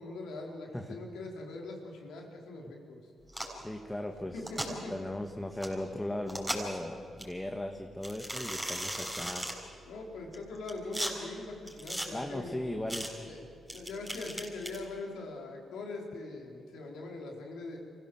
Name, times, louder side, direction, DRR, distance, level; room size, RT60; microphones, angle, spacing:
voice 1, 0.0-3.0 4.3-4.9 9.8-12.6 13.2-13.4 13.7-17.8, left 3 dB, 85° left, 0 dB, 4.3 m, -42 dB
sound 1, 3.3-3.6 4.4-4.7 5.6-5.7 6.3-6.8 7.2-7.3 8.0-9.5 10.3-11.1 11.7-12.1 12.9-13.1 13.7-14.8, equal, 10° right, 6.5 m, -36 dB
voice 2, 3.6-4.4 4.9-9.5 12.1-13.3, left 1 dB, 10° left, 4 dB, 1.6 m, -37 dB
24.5 x 16.5 x 7.9 m, 2.5 s
cardioid pair, 65°, 0 cm